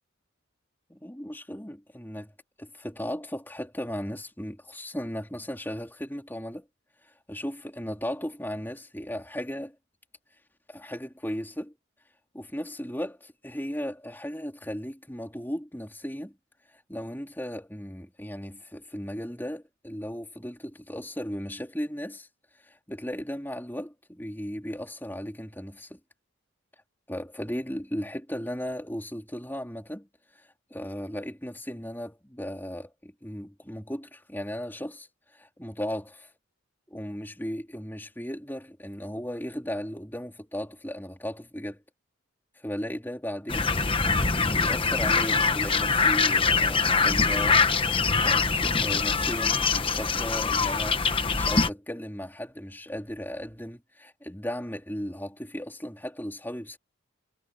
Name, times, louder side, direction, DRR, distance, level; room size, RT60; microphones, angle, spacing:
voice 1, 0.9-2.3 2.6-6.7 7.0-9.8 10.7-11.7 12.3-16.4 16.7-22.3 22.6-26.0 27.1-36.3 36.9-41.8 42.6-43.7 44.4-47.6 48.2-56.8, equal, 10° left, 3.8 m, -36 dB
sound 1, 43.5-51.7, left 4 dB, 25° left, 1.0 m, -23 dB
head